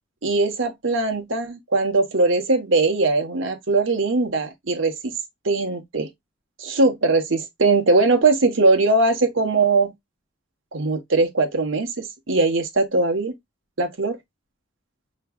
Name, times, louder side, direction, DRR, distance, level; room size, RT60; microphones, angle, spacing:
voice 1, 0.2-5.1 5.4-6.1 6.6-9.9 10.7-13.3 13.8-14.2, right 3 dB, 85° right, 1.2 m, -20 dB
5.8 x 3.1 x 2.3 m
head